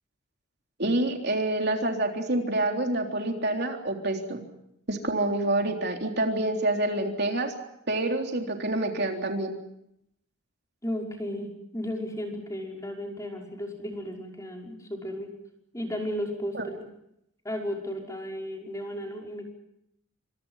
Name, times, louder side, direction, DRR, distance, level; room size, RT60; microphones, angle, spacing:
voice 1, 0.8-4.4 4.9-7.5 7.9-9.5 16.5-16.6, right 1 dB, 50° right, 3 dB, 3.6 m, -27 dB
voice 2, 10.8-15.3 15.7-16.8 17.4-19.4, equal, 15° left, 1 dB, 5.6 m, -34 dB
29.0 x 26.5 x 5.8 m, 0.78 s
head